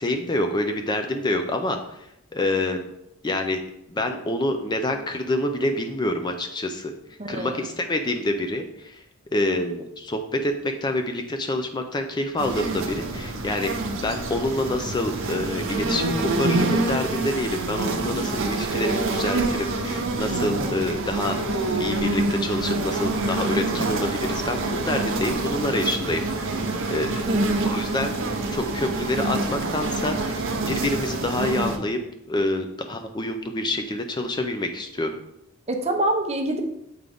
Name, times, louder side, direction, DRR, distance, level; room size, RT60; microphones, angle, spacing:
voice 1, 0.0-2.1 2.3-2.9 3.2-3.6 3.9-6.9 7.3-9.0 9.3-21.4 21.8-26.5 26.9-27.2 27.7-28.1 28.5-30.4 30.7-32.0 32.3-35.1, left 1 dB, 20° left, 5 dB, 0.4 m, -27 dB
voice 2, 7.2-7.6 27.3-27.7 35.7-36.6, right 1 dB, 30° right, 4 dB, 0.7 m, -25 dB
sound 1, 12.4-31.8, right 2 dB, 65° right, 0.8 m, -26 dB
7.8 x 3.8 x 3.5 m, 0.82 s
head